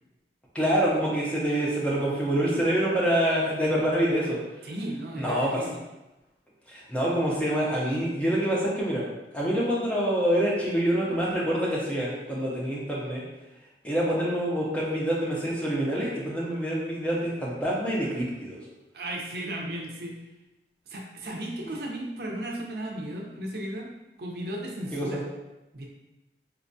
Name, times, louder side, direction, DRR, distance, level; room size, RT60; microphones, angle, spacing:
voice 1, 0.5-4.4 5.2-5.6 6.7-9.0 9.3-13.2 13.8-18.6 24.9-25.2, equal, 5° left, -5 dB, 0.5 m, -26 dB
voice 2, 4.6-5.8 18.9-20.2 20.9-23.9 24.2-25.2 25.7-25.9, right 1 dB, 60° right, -1 dB, 0.5 m, -35 dB
4.3 x 2.2 x 2.6 m, 1.0 s
head